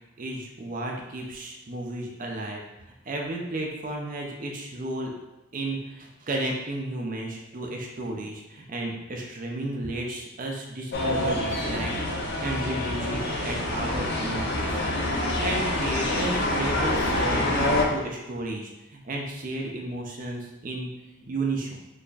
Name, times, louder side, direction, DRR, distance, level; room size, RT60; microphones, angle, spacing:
voice 1, 0.2-2.6 3.1-5.1 5.5-11.9 12.4-14.8 15.1-20.9 21.3-21.8, right 2 dB, 40° right, 0 dB, 0.5 m, -33 dB
sound 1, 10.9-17.8, left 1 dB, 50° left, 0.6 m, -26 dB
4.1 x 3.3 x 2.4 m, 0.96 s
head